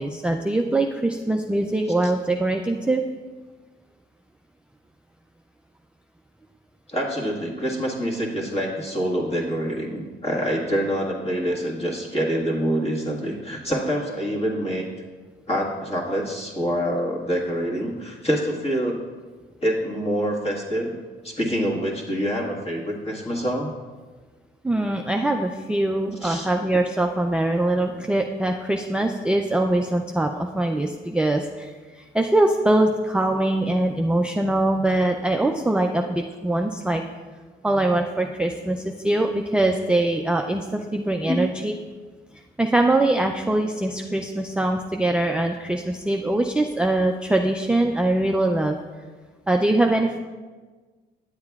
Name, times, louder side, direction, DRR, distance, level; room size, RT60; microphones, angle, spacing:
voice 1, 0.0-3.0 24.6-37.0 37.6-41.7 42.6-48.8 49.5-50.2, right 1 dB, 5° right, 2 dB, 0.3 m, -22 dB
voice 2, 6.9-14.9 15.5-19.0 19.6-20.9 21.2-23.7 26.2-26.5 41.3-41.4, equal, 30° left, -2 dB, 1.6 m, -26 dB
9.4 x 7.8 x 2.3 m, 1.4 s
cardioid pair, 90°, 20 cm